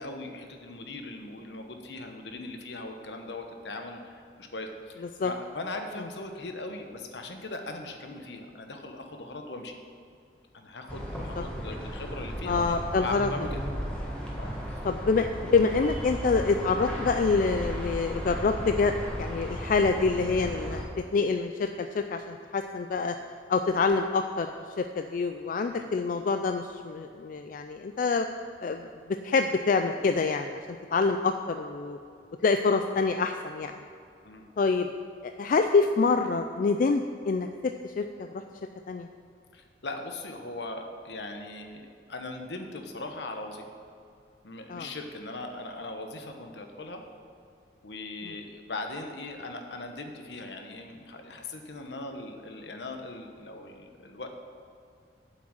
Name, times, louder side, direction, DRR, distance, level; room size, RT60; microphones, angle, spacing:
voice 1, 0.0-9.7 10.5-12.7 13.0-13.6 14.4-14.8 25.7-25.9 34.2-34.4 39.5-41.8 42.1-43.7 44.4-47.0 47.8-54.3, left 2 dB, 75° left, 4 dB, 1.1 m, -39 dB
sound 1, 10.9-20.8, equal, 5° left, 1.5 m, -35 dB
voice 2, 12.5-13.3 14.8-23.2 23.5-24.5 24.8-28.3 28.6-30.6 30.9-32.0 32.4-33.7 34.6-34.9 35.4-38.4 38.9-39.1 44.7-44.9, left 4 dB, 50° left, 7 dB, 0.3 m, -26 dB
7.9 x 6.1 x 7.6 m, 2.4 s
head